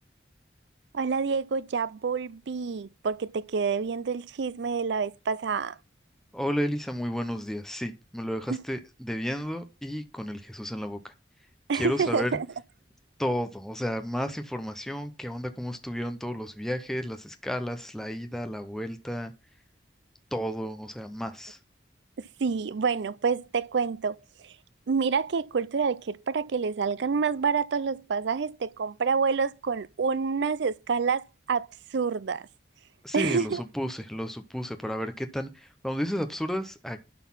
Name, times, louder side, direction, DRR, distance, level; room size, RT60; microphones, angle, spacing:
voice 1, 0.9-5.8 11.7-12.5 22.4-24.2 24.4-24.5 24.9-32.5 33.1-33.6, right 5 dB, 75° right, 0.5 m, -28 dB
voice 2, 6.3-11.1 11.7-12.3 13.2-19.3 20.3-21.6 33.0-37.0, equal, ahead, 0.7 m, -32 dB
11.5 x 4.1 x 5.5 m
head